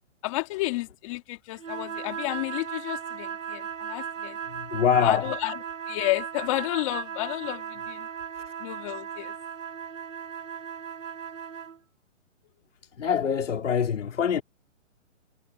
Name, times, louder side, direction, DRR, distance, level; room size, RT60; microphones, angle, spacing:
voice 1, 0.2-4.4 5.0-5.6 5.9-8.1 8.6-9.3, left 21 dB, 25° left, 2.4 m, -31 dB
sound 1, 1.6-11.8, right 7 dB, 80° right, 5.4 m, -37 dB
voice 2, 4.4-5.3 8.3-8.5 13.0-14.4, left 7 dB, 70° left, 3.9 m, -25 dB
hypercardioid pair, 165°, 38 cm